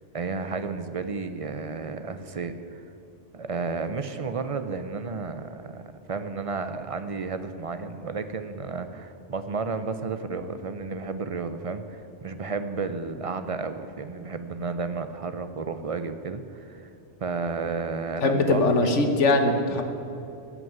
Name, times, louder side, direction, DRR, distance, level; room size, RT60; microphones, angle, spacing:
voice 1, 0.1-2.8 3.3-16.9 17.2-18.9 19.7-19.8, right 4 dB, 45° right, 9 dB, 0.5 m, -32 dB
voice 2, 18.2-19.8, left 2 dB, 75° left, 5 dB, 1.5 m, -21 dB
14.5 x 6.0 x 9.2 m, 2.8 s
omnidirectional pair, 1.2 m